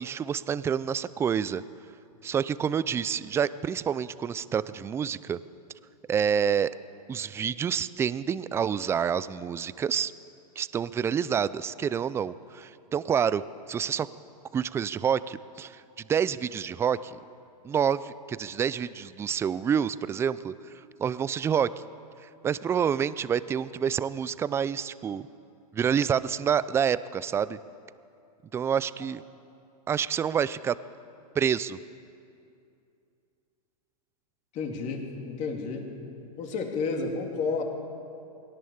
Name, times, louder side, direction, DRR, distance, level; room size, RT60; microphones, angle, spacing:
voice 1, 0.0-1.6 2.2-5.4 6.1-6.8 7.1-10.1 10.6-13.4 13.7-14.1 14.5-15.8 16.1-17.2 17.6-20.5 21.0-21.7 22.4-25.2 25.7-27.6 28.5-29.2 29.9-30.7 31.4-31.8, right 7 dB, 15° right, 17 dB, 0.4 m, -28 dB
voice 2, 34.5-35.9 36.4-37.6, left 4 dB, 35° left, 2 dB, 3.1 m, -31 dB
21.0 x 17.5 x 7.1 m, 2.6 s
hypercardioid pair, 130°, 20 cm